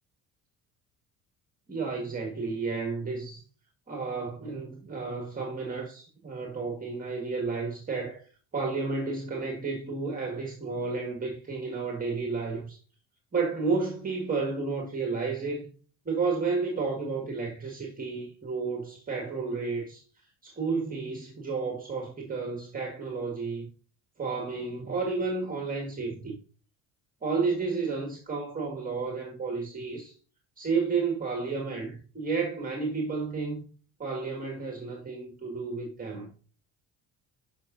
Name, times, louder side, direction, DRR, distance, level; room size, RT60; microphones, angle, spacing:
voice 1, 1.7-3.4 3.9-8.2 8.5-12.8 13.3-15.7 16.1-20.0 20.4-23.7 24.2-26.4 27.2-30.1 30.6-33.6 34.0-36.3, right 4 dB, 25° right, 1.9 m, -31 dB
10.5 x 5.7 x 2.5 m
cardioid pair, 105°, 33 cm